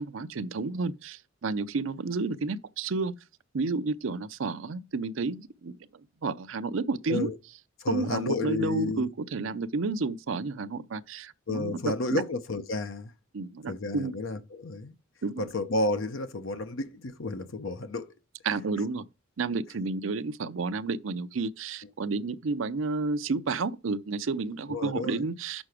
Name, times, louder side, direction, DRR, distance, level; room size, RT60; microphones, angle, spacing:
voice 1, 0.0-3.1 3.5-5.8 6.2-7.3 7.9-12.2 13.3-14.1 15.2-15.5 18.4-19.0 19.4-25.6, right 4 dB, 70° right, 0.6 m, -31 dB
voice 2, 7.8-9.1 11.5-13.1 13.7-14.9 15.4-18.1 24.7-25.2, left 2 dB, 75° left, 0.8 m, -31 dB
6.7 x 6.2 x 4.9 m
head